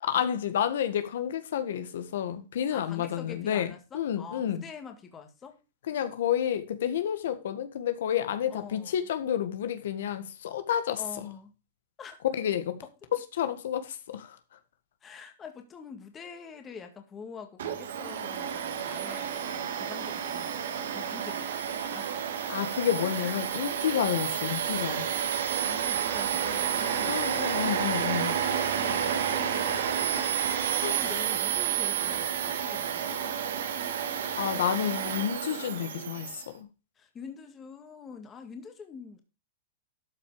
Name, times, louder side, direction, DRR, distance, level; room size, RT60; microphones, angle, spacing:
voice 1, 0.0-3.7 3.9-4.6 5.9-11.3 12.3-12.8 13.3-14.4 22.5-25.1 27.0-28.4 30.8-31.0 34.3-36.7, left 9 dB, 75° left, 1.6 m, -30 dB
voice 2, 2.7-5.6 8.5-9.1 11.0-11.5 12.0-12.2 15.0-22.1 23.1-23.4 25.6-27.4 28.1-33.4 37.0-39.2, left 6 dB, 15° left, 1.9 m, -46 dB
Domestic sounds home sounds, 17.6-36.5, right 8 dB, 75° right, 2.1 m, -30 dB
12.5 x 5.9 x 4.9 m
supercardioid pair, 155°, 0 cm